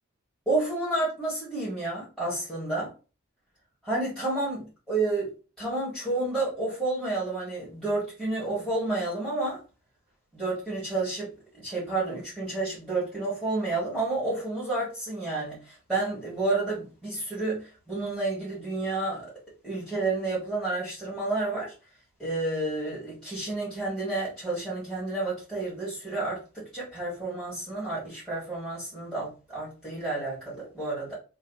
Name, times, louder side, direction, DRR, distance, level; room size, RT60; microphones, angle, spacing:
voice 1, 0.4-2.9 3.8-4.6 4.9-9.6 10.3-19.3 19.6-21.7 22.2-31.1, right 2 dB, 5° left, 1.7 m, -30 dB
3.2 x 2.6 x 4.0 m
head